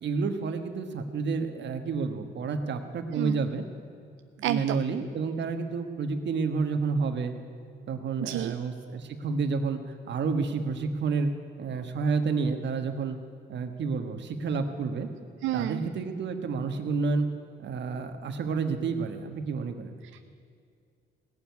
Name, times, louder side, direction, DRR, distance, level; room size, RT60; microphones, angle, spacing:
voice 1, 0.0-3.6 4.4-7.3 7.9-11.3 11.6-13.2 13.5-15.1 15.5-17.3 17.6-20.0, right 4 dB, 65° right, 7 dB, 1.4 m, -30 dB
voice 2, 4.4-4.8 8.2-8.5 15.4-15.9 20.1-20.2, right 13 dB, 80° right, 11 dB, 0.4 m, -30 dB
17.5 x 7.1 x 9.4 m, 2.3 s
cardioid pair, 90°, 20 cm